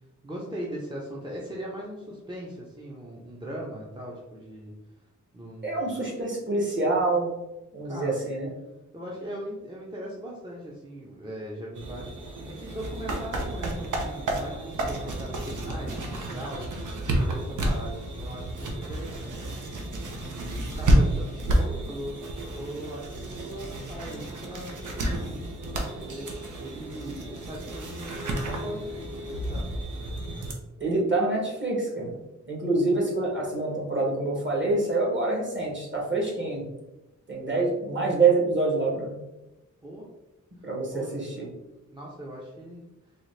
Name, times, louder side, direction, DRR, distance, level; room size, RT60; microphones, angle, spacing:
voice 1, 0.2-4.7 5.3-6.0 7.8-8.2 8.9-16.9 17.2-19.5 20.3-22.2 22.5-29.7 39.8-40.1 40.6-41.1 41.9-42.9, equal, 15° right, -4 dB, 0.7 m, -40 dB
voice 2, 5.6-7.3 7.7-8.5 30.8-32.1 32.5-36.6 37.3-39.1 40.6-41.5, right 3 dB, 40° right, -3 dB, 1.4 m, -26 dB
sound 1, 11.7-30.5, right 1 dB, 75° right, 0.8 m, -30 dB
4.0 x 2.4 x 3.2 m, 1.0 s
cardioid pair, 75°, 31 cm